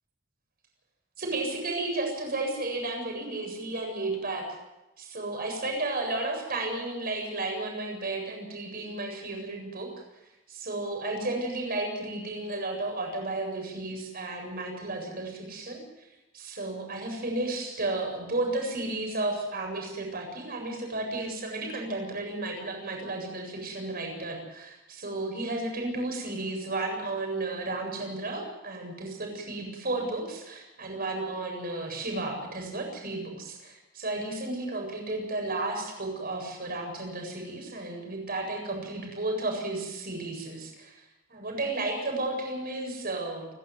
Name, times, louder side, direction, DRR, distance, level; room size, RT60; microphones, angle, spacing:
voice 1, 1.2-4.4 5.0-9.9 10.5-16.1 16.3-41.0 41.3-43.5, right 2 dB, 45° right, 2 dB, 7.9 m, -33 dB
30.0 x 13.0 x 7.7 m, 0.96 s
head